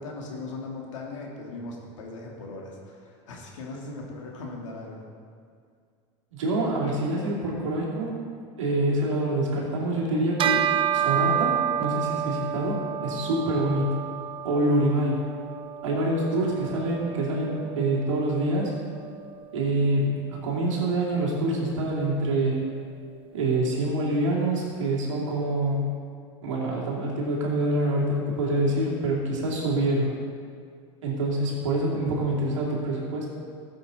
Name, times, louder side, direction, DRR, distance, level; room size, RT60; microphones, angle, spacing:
voice 1, 0.0-5.1 16.5-16.8, left 2 dB, 85° left, -1 dB, 2.2 m, -39 dB
voice 2, 6.3-8.2 8.6-13.9 14.4-15.2 15.8-18.7 19.5-22.6 23.3-25.9 26.4-30.1 31.0-33.3, right 1 dB, 90° right, -4 dB, 2.9 m, -26 dB
Bell, 10.4-20.1, right 9 dB, 35° right, 0.5 m, -30 dB
14.5 x 7.8 x 4.1 m, 2.2 s
hypercardioid pair, 100°, 16 cm